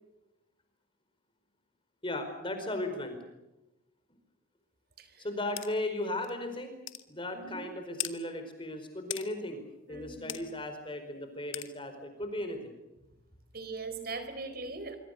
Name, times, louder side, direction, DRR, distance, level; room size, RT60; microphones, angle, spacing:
voice 1, 2.0-3.2 5.2-6.7 7.1-9.6 9.9-12.7, left 1 dB, 25° left, 7 dB, 4.7 m, -36 dB
sound 1, 5.6-5.7 6.2-6.3 6.9-7.0 8.0-8.2 9.1-9.3 10.3-10.4 11.5-11.7, left 13 dB, 65° left, 1.6 m, -36 dB
voice 2, 7.3-7.7 9.9-10.3 13.5-15.0, right 3 dB, 45° right, 10 dB, 4.2 m, -40 dB
25.5 x 24.5 x 6.6 m, 0.97 s
head